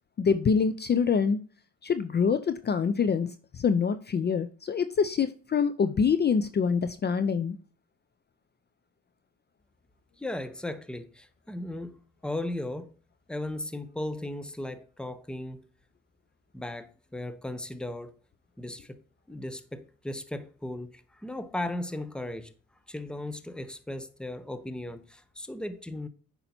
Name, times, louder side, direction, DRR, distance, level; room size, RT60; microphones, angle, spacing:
voice 1, 0.2-1.4 1.8-7.6, left 6 dB, 35° left, 0.5 m, -25 dB
voice 2, 10.2-12.0 12.2-12.9 13.3-15.6 16.5-18.1 18.6-19.0 19.3-22.5 22.9-26.1, left 1 dB, 5° left, 0.7 m, -36 dB
8.6 x 5.5 x 2.7 m
cardioid pair, 90°, 30 cm